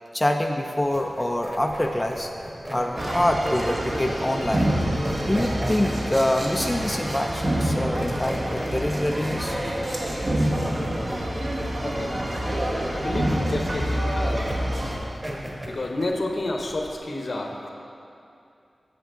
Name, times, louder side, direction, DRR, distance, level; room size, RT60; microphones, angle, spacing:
voice 1, 0.1-2.3 2.7-4.7 5.2-9.6, left 1 dB, 15° left, 3 dB, 0.4 m, -25 dB
sound 1, 0.8-17.0, equal, 25° right, 1.6 m, -38 dB
sound 2, 2.9-15.0, right 1 dB, 60° right, 1.3 m, -27 dB
voice 2, 12.9-14.5 15.7-17.7, left 2 dB, 60° left, 2 dB, 0.9 m, -30 dB
9.0 x 7.0 x 3.7 m, 2.6 s
wide cardioid pair, 60°, 0 cm